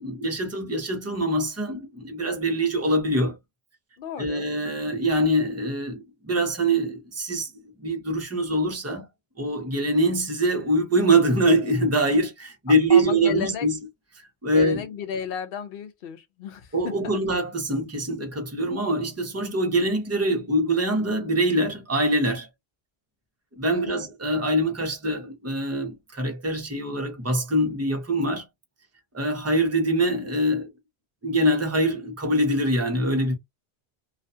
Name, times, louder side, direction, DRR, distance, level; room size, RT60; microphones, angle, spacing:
voice 1, 0.0-3.4 4.2-7.5 7.8-9.1 9.4-13.8 14.4-14.8 16.7-22.5 23.6-28.5 29.1-30.7 31.2-33.3, right 1 dB, 15° right, 0.6 m, -24 dB
voice 2, 4.0-4.5 12.9-13.7 14.5-17.2 23.7-24.1, left 7 dB, 70° left, 0.8 m, -34 dB
2.4 x 2.2 x 2.6 m
omnidirectional pair, 1.0 m